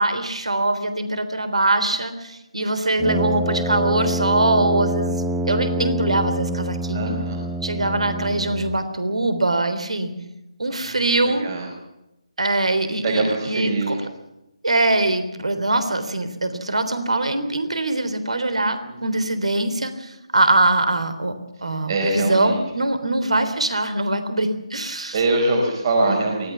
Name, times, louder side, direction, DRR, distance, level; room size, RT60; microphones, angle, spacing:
voice 1, 0.0-7.2 7.6-10.1 10.6-11.5 12.4-14.0 14.6-21.3 21.6-25.1 26.1-26.2, right 2 dB, 70° right, 10 dB, 3.6 m, -22 dB
Brass instrument, 3.0-8.9, right 1 dB, 5° right, 1.0 m, -26 dB
voice 2, 6.9-7.4 10.7-11.7 13.0-14.0 18.8-19.2 21.6-22.6 25.1-26.5, right 2 dB, 40° right, 2 dB, 4.9 m, -24 dB
24.0 x 18.5 x 7.2 m, 0.91 s
figure-of-eight pair, 150°, 3 cm